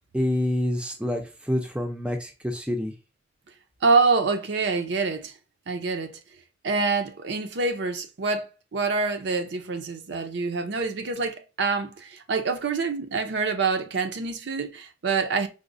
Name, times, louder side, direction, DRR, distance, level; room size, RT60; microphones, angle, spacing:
voice 1, 0.1-2.9, left 1 dB, 5° right, 0.4 m, -27 dB
voice 2, 3.8-5.3 5.7-6.2 6.6-15.5, right 4 dB, 60° right, 0.5 m, -26 dB
4.9 x 2.0 x 2.5 m
head